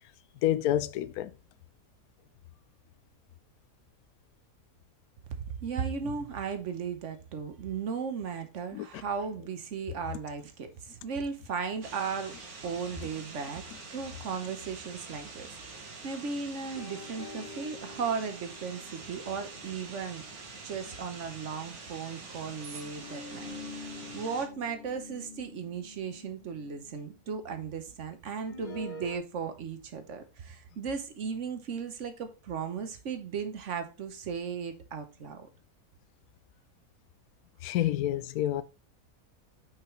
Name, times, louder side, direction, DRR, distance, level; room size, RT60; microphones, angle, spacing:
voice 1, 0.4-1.3 8.7-8.9 37.6-38.6, left 12 dB, 85° left, 1.1 m, -28 dB
voice 2, 5.4-12.4 12.6-20.2 20.6-35.5, right 6 dB, 60° right, 1.1 m, -36 dB
sound 1, 11.8-24.5, right 3 dB, 85° right, 1.8 m, -46 dB
sound 2, 16.8-21.3 23.0-27.1 28.5-29.2, left 2 dB, 40° left, 0.8 m, -47 dB
5.9 x 5.3 x 3.1 m
omnidirectional pair, 1.5 m